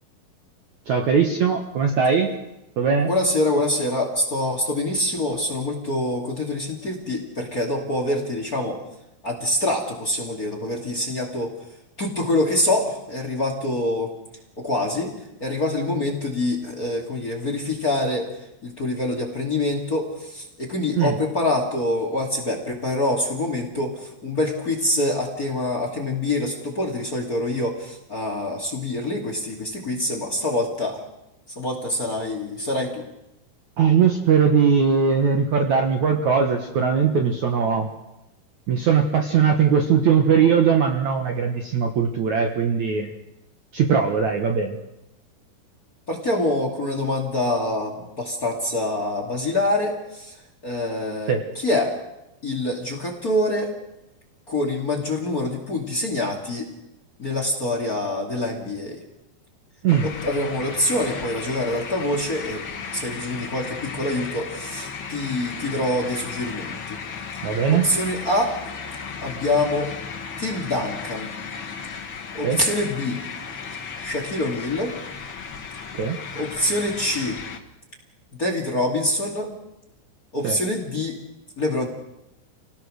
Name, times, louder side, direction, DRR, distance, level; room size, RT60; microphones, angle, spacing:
voice 1, 0.9-2.3 2.8-3.1 21.0-21.1 33.8-37.9 38.7-43.1 43.7-44.8 51.3-51.4 59.8-60.1 67.4-67.9 72.4-72.6 75.9-76.2 80.4-80.6, right 6 dB, 60° right, 3 dB, 2.1 m, -20 dB
voice 2, 3.1-8.8 9.2-11.5 12.0-14.1 14.6-15.1 15.4-18.3 18.6-31.0 31.6-33.0 46.1-50.4 50.6-51.9 52.4-53.7 54.5-56.7 57.2-59.0 60.0-62.6 62.9-67.0 67.7-68.6 69.2-69.9 70.4-71.3 72.3-73.2 74.0-74.9 76.3-77.4 78.4-79.5 80.3-81.2 81.6-81.9, left 1 dB, 25° left, 2 dB, 2.3 m, -25 dB
sound 1, 59.9-77.6, left 5 dB, 80° left, 1.1 m, -35 dB
28.0 x 18.0 x 6.5 m, 0.90 s
omnidirectional pair, 4.8 m